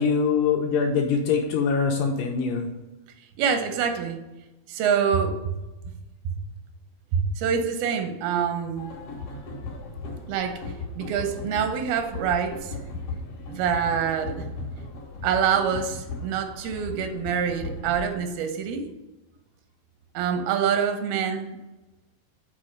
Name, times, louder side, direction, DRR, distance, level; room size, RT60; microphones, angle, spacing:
voice 1, 0.0-2.7, left 5 dB, 80° left, 2 dB, 2.0 m, -23 dB
voice 2, 3.4-4.2 4.7-5.4 7.1-8.9 10.3-10.6 11.0-12.8 13.5-14.4 15.2-18.9 20.1-21.6, right 7 dB, 90° right, 6 dB, 2.7 m, -25 dB
sound 1, 8.8-18.1, left 3 dB, 60° left, 1.6 m, -37 dB
6.1 x 4.3 x 6.4 m, 1.1 s
omnidirectional pair, 4.2 m